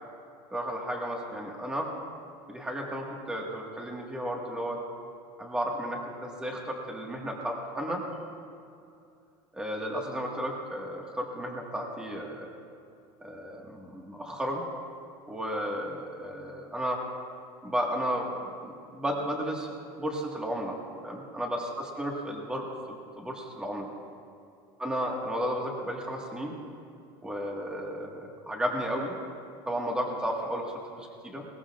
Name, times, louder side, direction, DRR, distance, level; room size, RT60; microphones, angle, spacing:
voice 1, 0.5-1.9 2.5-4.8 5.4-8.0 9.5-12.5 13.2-14.6 15.3-17.0 17.6-18.3 18.6-19.7 20.0-20.8 21.0-23.9 24.8-26.5 27.2-29.1 29.7-30.7 31.0-31.5, equal, 5° right, -1 dB, 1.6 m, -33 dB
21.0 x 19.5 x 2.5 m, 2.5 s
cardioid pair, 170°, 12 cm